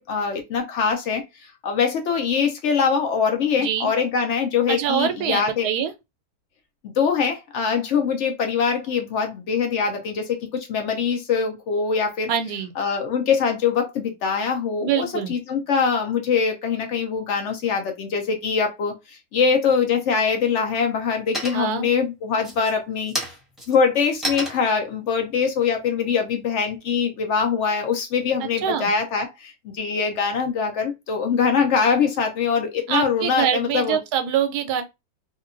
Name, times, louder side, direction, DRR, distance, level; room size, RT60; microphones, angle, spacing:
voice 1, 0.0-5.7 6.8-12.3 12.8-23.1 23.7-34.0, left 6 dB, 65° left, 0.7 m, -23 dB
voice 2, 3.6-3.9 4.7-5.9 12.3-12.7 14.8-15.3 21.5-21.9 28.4-28.9 32.9-34.8, right 9 dB, 85° right, 1.1 m, -24 dB
sound 1, 19.7-20.3 20.7-21.1 21.3-21.9 22.3-26.8, right 1 dB, ahead, 0.6 m, -33 dB
2.7 x 2.2 x 2.4 m
omnidirectional pair, 1.6 m